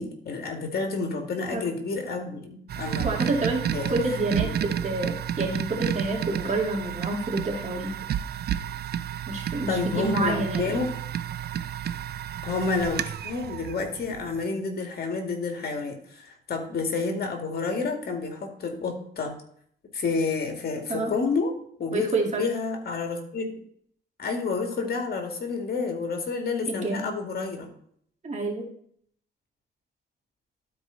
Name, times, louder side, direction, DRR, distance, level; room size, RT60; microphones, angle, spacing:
voice 1, 0.0-3.1 3.7-4.0 4.4-4.5 9.7-10.9 12.4-19.3 19.9-21.5 21.8-23.5 24.2-27.7, left 4 dB, 50° left, 3 dB, 2.1 m, -29 dB
sound 1, 2.7-14.5, right 10 dB, 55° right, 0.5 m, -31 dB
voice 2, 3.0-3.6 3.9-4.5 4.8-7.9 9.3-10.7 20.9-21.1 21.9-22.5 26.7-27.1 28.2-28.7, right 2 dB, 35° right, 0 dB, 2.2 m, -28 dB
12.0 x 4.7 x 4.0 m, 0.65 s
cardioid pair, 90°, 20 cm